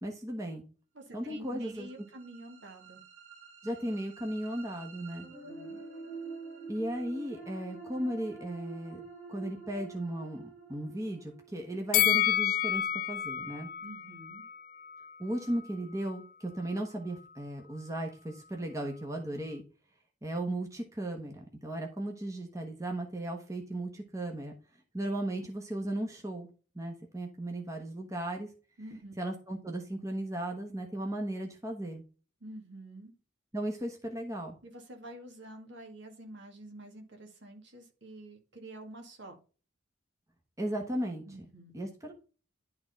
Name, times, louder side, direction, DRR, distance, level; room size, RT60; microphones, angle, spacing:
voice 1, 0.0-0.6 1.1-1.9 3.6-5.3 6.7-9.0 9.3-13.7 15.2-19.6 20.2-24.5 24.9-26.5 26.7-28.5 29.2-32.0 33.5-34.6 40.6-41.2 41.7-42.1, right 1 dB, 15° right, 2 dB, 1.2 m, -36 dB
voice 2, 0.9-3.0 5.3-5.8 13.8-14.4 28.8-29.1 32.4-33.2 34.6-39.4 41.3-41.8, right 1 dB, 60° right, 3 dB, 2.0 m, -48 dB
sound 1, 1.4-13.4, right 4 dB, 35° right, 4.4 m, -48 dB
Bell, 11.9-15.1 15.5-15.6, left 11 dB, 45° left, 0.3 m, -29 dB
11.5 x 3.8 x 4.1 m, 0.36 s
head